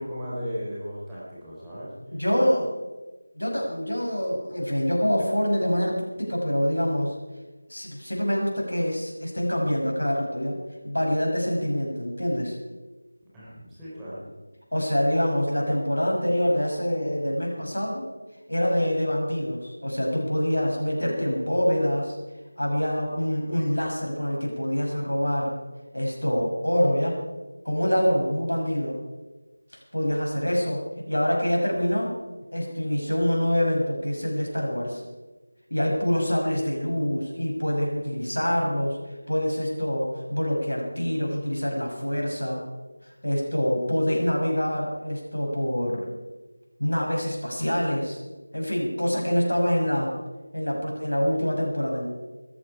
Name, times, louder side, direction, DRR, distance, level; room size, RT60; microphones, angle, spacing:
voice 1, 0.0-1.9 13.3-14.2, equal, 5° right, -10 dB, 3.9 m, -35 dB
voice 2, 2.1-2.7 3.4-7.2 7.7-10.6 10.8-12.6 14.7-18.1 18.5-22.2 22.6-25.6 25.9-27.2 27.6-29.0 29.9-32.1 32.5-35.0 35.7-39.0 39.3-42.6 43.2-46.1 46.8-48.2 48.5-50.1 50.5-52.0, equal, 90° left, -1 dB, 6.0 m, -25 dB
17.5 x 13.5 x 4.9 m, 1.2 s
figure-of-eight pair, 170°, 0 cm